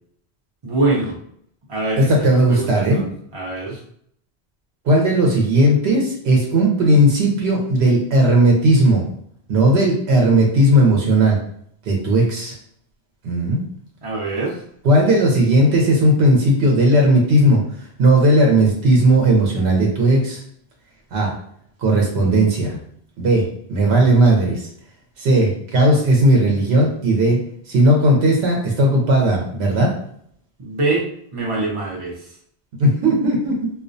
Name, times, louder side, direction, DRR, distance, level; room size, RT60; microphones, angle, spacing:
voice 1, 0.6-1.2 1.7-2.1 2.5-3.8 14.0-14.6 30.6-32.3, right 2 dB, 35° right, -3 dB, 0.6 m, -24 dB
voice 2, 2.0-3.0 4.8-9.1 9.5-11.4 11.8-12.5 13.2-13.6 14.8-17.6 18.0-20.4 21.1-21.3 21.8-22.8 23.2-24.7 25.2-27.4 27.7-29.9 32.8-33.7, right 1 dB, 75° right, 0 dB, 0.9 m, -16 dB
2.3 x 2.1 x 2.5 m, 0.66 s
omnidirectional pair, 1.1 m